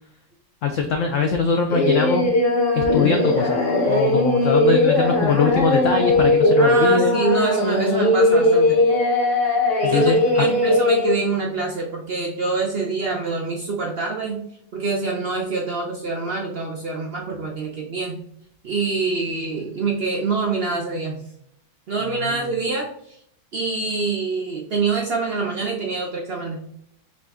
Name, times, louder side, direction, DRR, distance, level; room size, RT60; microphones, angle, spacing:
voice 1, 0.6-2.3 2.7-3.6 3.8-7.2 9.8-10.5 22.0-22.5, left 5 dB, 80° left, 4 dB, 0.7 m, -22 dB
Singing, 1.7-11.1, left 1 dB, 40° left, 0.9 m, -19 dB
voice 2, 6.6-8.8 9.9-14.4 14.7-18.2 18.6-21.2 21.9-23.2 23.5-26.6, right 4 dB, 80° right, -1 dB, 0.5 m, -25 dB
5.0 x 2.5 x 3.4 m, 0.69 s
omnidirectional pair, 1.8 m